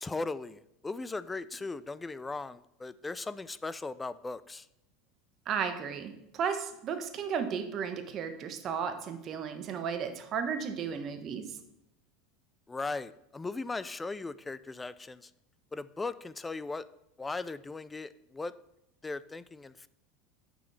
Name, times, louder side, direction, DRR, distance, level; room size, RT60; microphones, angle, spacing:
voice 1, 0.0-4.7 12.7-15.3 15.7-16.9 17.2-18.5 19.0-19.9, left 3 dB, 15° left, 16 dB, 0.3 m, -38 dB
voice 2, 5.5-11.6, right 7 dB, 40° right, 8 dB, 1.1 m, -34 dB
6.2 x 6.0 x 7.2 m, 0.81 s
supercardioid pair, 115°, 0 cm